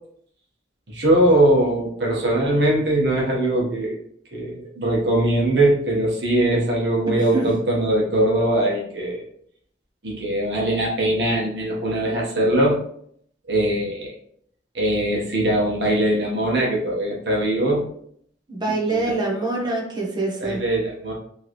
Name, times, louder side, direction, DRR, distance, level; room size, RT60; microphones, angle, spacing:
voice 1, 0.9-4.0 4.3-9.2 10.0-12.8 13.5-14.1 14.7-17.9 18.9-19.1 20.4-21.1, right 1 dB, 65° right, -3 dB, 1.3 m, -21 dB
voice 2, 7.1-7.5 18.5-20.6, right 3 dB, 25° right, -3 dB, 1.1 m, -25 dB
4.6 x 3.2 x 3.1 m, 0.65 s
head